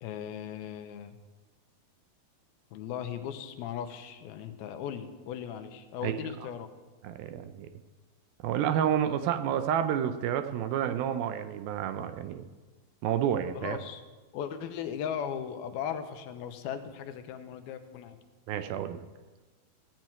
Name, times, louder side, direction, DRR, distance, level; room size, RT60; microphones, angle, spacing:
voice 1, 0.0-1.1 2.7-6.7 13.5-14.0 14.3-18.2, left 8 dB, 80° left, 8 dB, 2.7 m, -37 dB
voice 2, 7.0-7.7 8.4-12.5 13.0-13.8 18.5-19.0, right 9 dB, 80° right, 9 dB, 2.4 m, -29 dB
16.0 x 6.1 x 9.2 m, 1.2 s
omnidirectional pair, 4.4 m